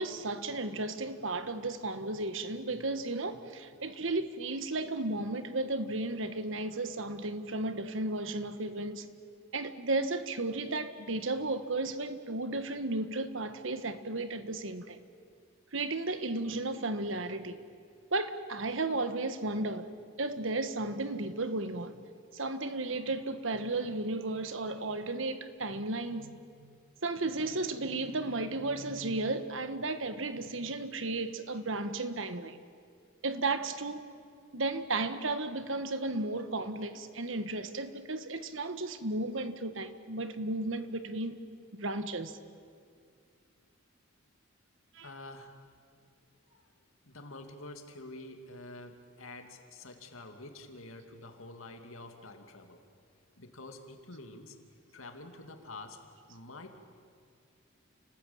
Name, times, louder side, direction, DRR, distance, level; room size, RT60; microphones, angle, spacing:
voice 1, 0.0-9.1 9.5-15.0 15.7-17.6 18.1-22.0 22.3-26.8 27.0-32.6 33.2-34.0 34.5-41.4 41.7-42.4 44.9-45.1, right 2 dB, 65° right, 10 dB, 1.5 m, -34 dB
voice 2, 45.0-45.5 46.5-46.7 47.0-52.8 53.4-54.6 54.9-56.0 56.3-56.8, left 2 dB, 75° left, 5 dB, 2.6 m, -47 dB
29.5 x 19.5 x 8.8 m, 2.2 s
head